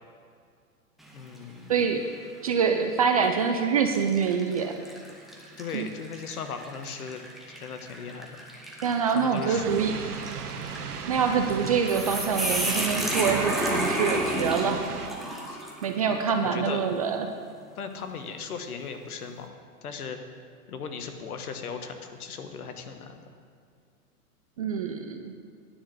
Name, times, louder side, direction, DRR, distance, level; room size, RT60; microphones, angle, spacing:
sound 1, 1.0-1.5 2.0-2.1 3.1-3.3 3.9-16.0, equal, ahead, 1.0 m, -33 dB
voice 1, 1.1-1.8 5.6-7.2 7.6-8.4 9.1-10.3 15.4-15.6 16.0-16.8 17.8-19.5 19.8-20.2 20.7-23.2, left 6 dB, 70° left, 6 dB, 1.4 m, -38 dB
voice 2, 1.7-2.0 2.4-4.8 5.7-5.9 8.8-9.9 11.1-14.8 15.8-17.3 24.6-25.3, right 6 dB, 25° right, 5 dB, 0.4 m, -25 dB
sound 2, 9.5-15.1, right 6 dB, 75° right, 1.2 m, -36 dB
9.9 x 6.2 x 8.4 m, 2.2 s
hypercardioid pair, 125°, 45 cm